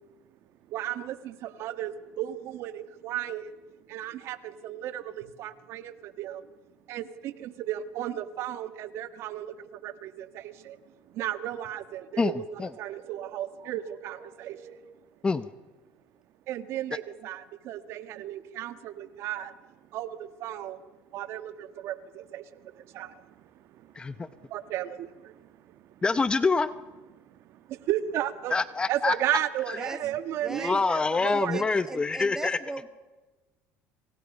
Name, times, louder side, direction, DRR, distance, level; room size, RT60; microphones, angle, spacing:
voice 1, 0.7-3.6 3.9-6.4 6.9-10.8 11.1-14.9 16.5-20.8 21.1-26.0 27.1-28.5 28.9-31.6, right 12 dB, 60° right, 11 dB, 1.5 m, -35 dB
voice 2, 24.0-24.3 26.0-26.7 28.5-29.1 30.6-32.6, left 4 dB, 20° left, 14 dB, 0.8 m, -25 dB
voice 3, 30.4-30.7 31.3-32.9, right 2 dB, 10° right, 7 dB, 2.5 m, -38 dB
29.5 x 27.5 x 5.3 m, 1.2 s
supercardioid pair, 110°, 5 cm